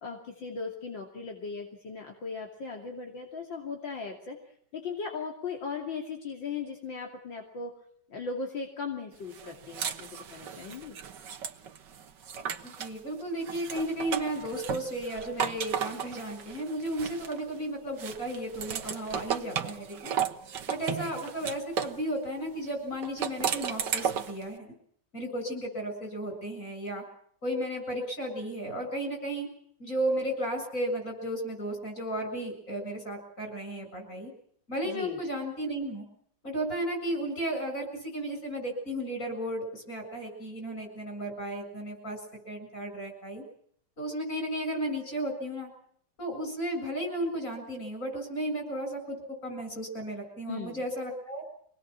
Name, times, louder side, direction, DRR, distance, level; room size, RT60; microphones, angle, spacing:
voice 1, 0.0-4.4 4.7-7.7 8.1-11.0 34.8-35.2 50.5-50.8, left 5 dB, 75° left, 1 dB, 3.5 m, -38 dB
sound 1, 9.3-13.0 13.4-17.6 18.0-22.0 23.0-24.4, right 8 dB, 65° right, 1.9 m, -35 dB
voice 2, 12.6-20.1 20.7-24.7 25.1-27.0 27.4-29.5 29.8-34.3 34.7-36.1 36.4-42.2 42.5-43.4 44.0-45.7 46.2-51.4, right 1 dB, 40° left, 4 dB, 7.9 m, -34 dB
25.5 x 19.5 x 7.4 m, 0.64 s
omnidirectional pair, 2.0 m